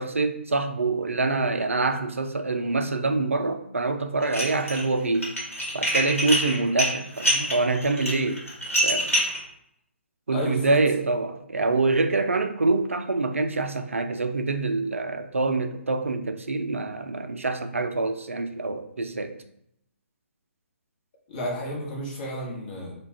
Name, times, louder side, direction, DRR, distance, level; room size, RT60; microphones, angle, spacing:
voice 1, 0.0-5.3 5.7-8.4 8.8-9.1 10.3-19.3, right 3 dB, 75° right, 0.3 m, -25 dB
Dishes pots and pans, 4.2-4.8 5.1-9.4, equal, 90° left, 1.0 m, -25 dB
voice 2, 10.3-10.7 21.3-22.9, equal, 40° left, 1.0 m, -31 dB
2.3 x 2.2 x 3.4 m
figure-of-eight pair, 135°, 7 cm